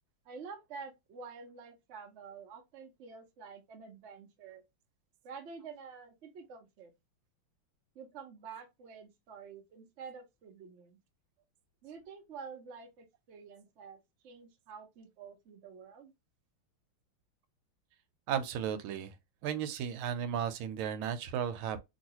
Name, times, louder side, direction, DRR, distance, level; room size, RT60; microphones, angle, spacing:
voice 1, 0.2-4.6 5.2-6.9 7.9-11.0 11.8-14.0 14.2-16.1, right 5 dB, 65° right, 0.7 m, -49 dB
voice 2, 18.3-19.1 19.4-21.8, right 8 dB, 90° right, 1.5 m, -34 dB
3.1 x 2.9 x 2.8 m
omnidirectional pair, 2.3 m